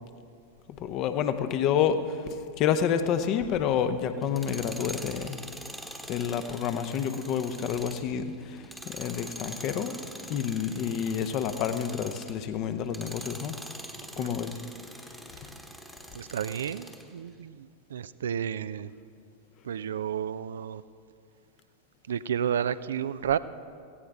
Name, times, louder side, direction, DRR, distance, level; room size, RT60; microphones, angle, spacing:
voice 1, 0.8-2.2 2.6-5.4 6.1-8.6 8.9-10.0 10.3-13.6 14.2-14.5 15.4-15.5, left 8 dB, 40° left, 10 dB, 0.8 m, -28 dB
Tools, 4.2-12.4 12.8-17.1, equal, ahead, 1.1 m, -43 dB
voice 2, 14.2-14.5 16.1-18.9 19.6-20.8 22.1-23.4, right 8 dB, 65° right, 15 dB, 0.4 m, -31 dB
17.0 x 15.5 x 3.5 m, 2.3 s
figure-of-eight pair, 90°, 0 cm